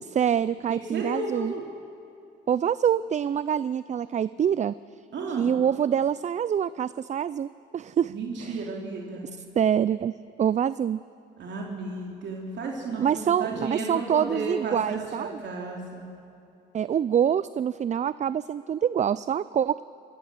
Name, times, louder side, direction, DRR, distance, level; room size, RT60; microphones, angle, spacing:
voice 1, 0.0-1.5 2.5-4.7 5.4-8.1 8.4-8.7 9.6-11.0 13.0-15.3 16.7-19.8, right 8 dB, 35° right, 17 dB, 0.4 m, -25 dB
voice 2, 0.7-1.6 5.1-5.5 8.1-9.3 11.4-16.0, right 3 dB, 65° right, -1 dB, 3.2 m, -33 dB
27.5 x 15.0 x 7.7 m, 2.7 s
cardioid pair, 90°, 20 cm